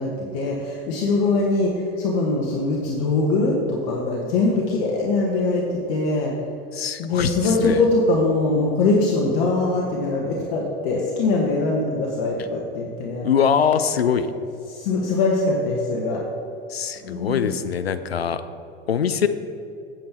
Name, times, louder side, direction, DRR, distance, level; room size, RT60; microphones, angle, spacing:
voice 1, 0.0-6.3 7.0-13.3 14.7-16.2 17.0-17.5, left 3 dB, 55° left, -2 dB, 1.2 m, -22 dB
voice 2, 6.7-7.8 13.2-14.3 16.7-18.4 18.9-19.3, left 7 dB, 85° left, 11 dB, 0.5 m, -22 dB
8.6 x 7.4 x 4.4 m, 2.7 s
figure-of-eight pair, 75°, 30 cm